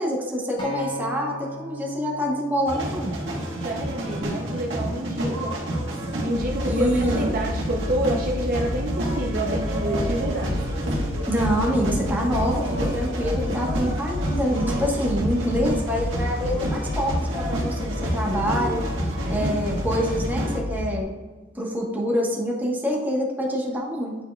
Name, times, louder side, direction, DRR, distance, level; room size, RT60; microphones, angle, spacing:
voice 1, 0.0-3.1 6.6-7.4 11.3-18.9 19.3-21.1 21.5-24.2, equal, 10° right, -3 dB, 1.2 m, -26 dB
Acoustic guitar, 0.6-4.9 5.7-5.8, left 1 dB, 25° left, 1.3 m, -38 dB
sound 1, 2.7-20.6, right 1 dB, 75° right, 1.6 m, -29 dB
voice 2, 3.6-5.6 6.2-10.7 19.2-19.6, right 1 dB, 50° right, 0 dB, 0.7 m, -28 dB
sound 2, 6.4-21.0, left 1 dB, 65° left, 0.6 m, -31 dB
10.0 x 4.6 x 2.3 m, 1.4 s
head